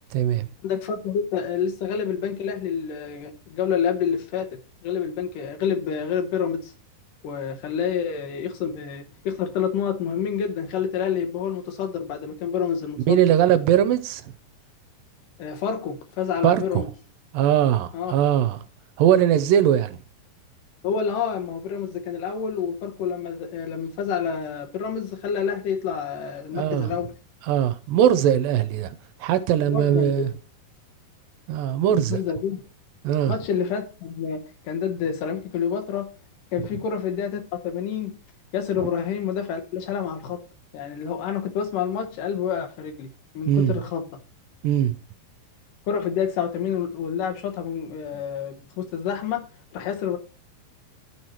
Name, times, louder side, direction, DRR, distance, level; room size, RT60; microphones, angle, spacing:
voice 1, 0.1-0.5 13.1-14.2 16.4-16.8 17.3-18.6 19.0-20.0 26.5-26.9 27.4-30.3 31.5-32.2 33.0-33.4 36.6-36.7 38.8-38.9 43.5-43.7 44.6-45.0, right 10 dB, 80° right, 2.2 m, -20 dB
voice 2, 0.6-6.7 7.2-13.2 15.4-16.9 17.9-18.1 20.8-27.1 29.7-30.3 32.1-32.6 33.3-36.1 36.5-38.1 38.5-40.4 40.7-44.2 45.9-49.5 49.7-50.2, left 7 dB, 75° left, 2.5 m, -28 dB
11.0 x 4.6 x 4.4 m
omnidirectional pair, 4.2 m